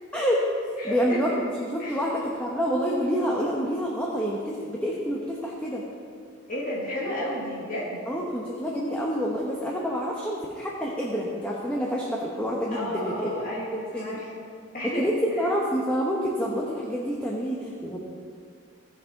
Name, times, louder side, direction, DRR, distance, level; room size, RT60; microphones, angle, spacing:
voice 1, 0.1-0.4 0.8-5.8 8.1-13.3 13.7-14.2 15.0-18.0, equal, 5° left, -4 dB, 0.9 m, -28 dB
voice 2, 0.8-1.2 1.8-2.1 6.5-8.0 12.7-14.3 14.7-15.5, equal, 40° left, -6 dB, 1.5 m, -32 dB
17.0 x 5.8 x 4.0 m, 2.2 s
head